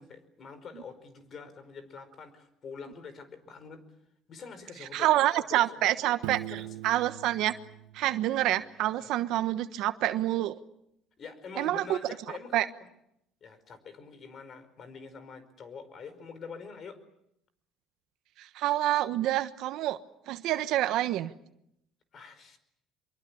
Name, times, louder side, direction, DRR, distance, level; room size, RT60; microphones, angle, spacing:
voice 1, 0.0-3.8 4.3-5.1 5.4-6.1 6.5-6.8 9.0-9.1 11.2-12.7 13.4-17.0 22.1-22.6, left 5 dB, 40° left, 13 dB, 5.0 m, -45 dB
voice 2, 4.9-7.5 7.9-10.5 11.6-12.0 12.5-12.6 18.4-20.0 20.3-21.3, right 14 dB, 70° right, 11 dB, 1.2 m, -27 dB
Piano, 6.2-9.0, right 15 dB, 90° right, 1.3 m, -42 dB
25.0 x 23.5 x 8.6 m, 0.79 s
cardioid pair, 115°, 0 cm